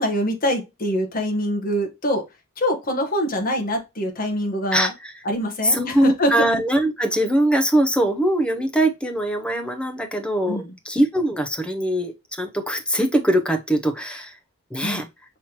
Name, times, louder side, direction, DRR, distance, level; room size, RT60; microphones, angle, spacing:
voice 1, 0.0-2.2 2.6-4.9 5.2-6.5 10.5-10.7 14.8-15.1, equal, 40° left, 1.2 m, -24 dB
voice 2, 4.7-5.1 5.6-14.4 14.7-15.1, right 1 dB, 5° left, 0.7 m, -22 dB
5.7 x 3.1 x 2.8 m
head